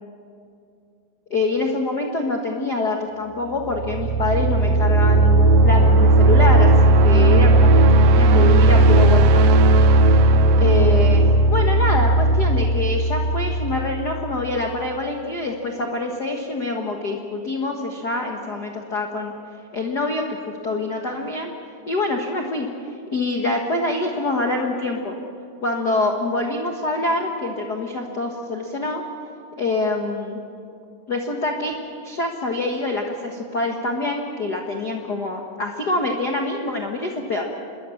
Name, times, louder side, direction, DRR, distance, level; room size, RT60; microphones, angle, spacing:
voice 1, 1.3-9.5 10.6-19.3 19.7-21.5 21.9-22.7 23.1-25.2 25.6-29.0 29.6-30.4 31.1-31.7 32.0-37.5, left 2 dB, 65° left, 1 dB, 1.0 m, -25 dB
sound 1, 3.6-14.4, right 2 dB, 80° right, 1.4 m, -15 dB
26.5 x 21.5 x 7.1 m, 2.5 s
omnidirectional pair, 4.1 m